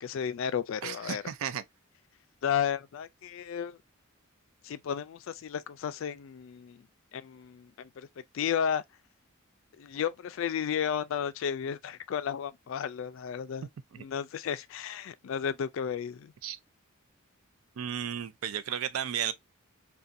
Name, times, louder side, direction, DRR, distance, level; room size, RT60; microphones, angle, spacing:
voice 1, 0.0-1.2 2.4-3.8 4.6-6.8 7.1-8.1 8.3-8.8 9.8-13.7 14.0-16.3, left 8 dB, 60° left, 0.3 m, -33 dB
voice 2, 0.8-1.6 13.9-14.0 16.4-16.6 17.8-19.3, right 9 dB, 75° right, 0.4 m, -34 dB
2.5 x 2.2 x 2.5 m
head